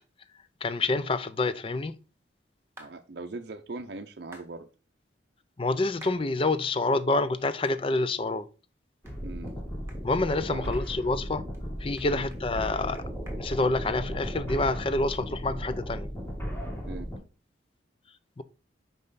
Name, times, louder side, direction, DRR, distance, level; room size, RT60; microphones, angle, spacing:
voice 1, 0.6-1.9 5.6-8.5 10.0-11.4 11.8-13.0 13.4-16.1 18.4-18.5, left 2 dB, 30° left, 0.5 m, -27 dB
sound 1, 2.8-2.9 4.3-4.5 6.0-6.2 6.7-6.8 7.6-7.8 8.3-8.4 9.0-9.2 9.5-9.6 9.9-10.0 10.3-10.4 10.7-11.2 11.5-11.6 12.0-14.3 14.6-14.7 15.1-15.3, right 1 dB, 15° right, 1.6 m, -51 dB
voice 2, 2.8-4.7 9.2-9.6 10.5-10.8 12.0-12.3 16.9-17.1, right 3 dB, 60° right, 0.6 m, -40 dB
sound 2, 9.0-17.2, equal, 15° left, 1.8 m, -36 dB
5.5 x 5.4 x 3.9 m
head